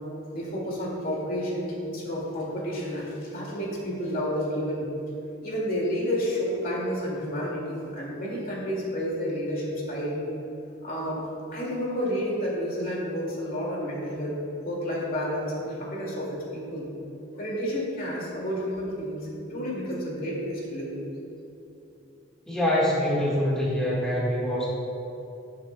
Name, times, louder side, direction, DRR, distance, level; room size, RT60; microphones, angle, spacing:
voice 1, 0.3-4.9 5.4-10.2 10.8-11.2 11.5-14.4 14.6-16.9 17.3-20.9, equal, 50° left, -4 dB, 2.2 m, -30 dB
voice 2, 22.5-24.7, equal, 5° left, -7 dB, 1.5 m, -25 dB
18.5 x 6.8 x 2.2 m, 2.9 s
head